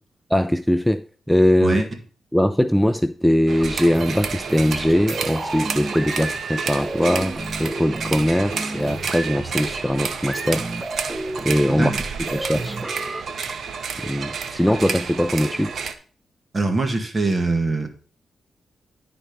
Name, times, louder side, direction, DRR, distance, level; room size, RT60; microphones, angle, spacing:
voice 1, 0.3-1.9 2.3-10.6 11.4-11.9 12.2-12.8 14.0-15.7, equal, ahead, 0.4 m, -21 dB
sound 1, 3.5-15.9, right 6 dB, 70° right, 0.8 m, -30 dB
sound 2, 3.6-13.2, right 2 dB, 20° right, 0.8 m, -32 dB
voice 2, 16.5-17.9, right 3 dB, 35° right, 1.6 m, -22 dB
10.0 x 4.3 x 5.3 m
cardioid pair, 75°, 0 cm